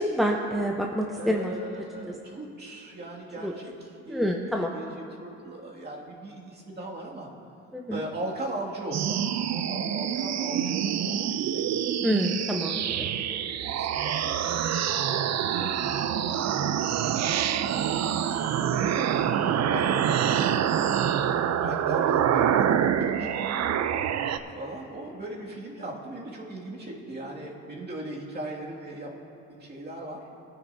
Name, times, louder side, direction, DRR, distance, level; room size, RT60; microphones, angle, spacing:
voice 1, 0.0-1.5 3.4-3.5 4.1-4.7 7.7-8.0 12.0-13.1 15.6-16.0 23.2-23.3, equal, ahead, 0 dB, 0.8 m, -27 dB
voice 2, 1.1-7.3 7.9-11.6 12.7-15.3 15.5-21.0 21.6-22.6 23.1-23.3 24.5-29.1 29.5-30.2, right 1 dB, 35° right, -3 dB, 2.3 m, -39 dB
sound 1, 8.9-24.4, right 9 dB, 60° right, 0.6 m, -26 dB
18.5 x 9.7 x 2.7 m, 3.0 s
cardioid pair, 90°, 30 cm